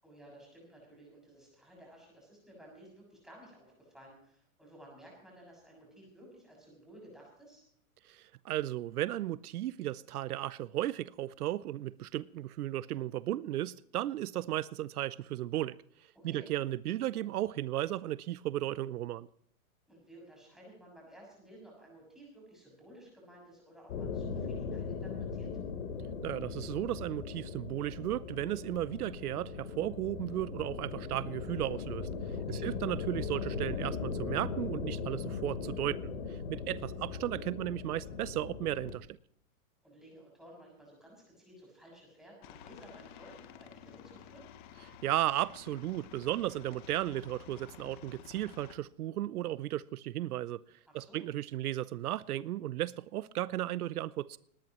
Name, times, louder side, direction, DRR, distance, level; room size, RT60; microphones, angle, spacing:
voice 1, 0.0-7.6 16.1-16.5 19.9-25.5 32.3-32.7 39.8-44.4 50.9-51.3, right 1 dB, ahead, 6.7 m, -55 dB
voice 2, 8.1-15.8 16.2-19.3 26.2-32.1 32.5-39.2 44.9-54.4, right 14 dB, 85° right, 0.7 m, -35 dB
sound 1, 23.9-39.0, left 5 dB, 55° left, 3.7 m, -39 dB
Aircraft, 42.4-48.7, left 9 dB, 35° left, 1.2 m, -52 dB
19.5 x 19.0 x 3.1 m
supercardioid pair, 170°, 44 cm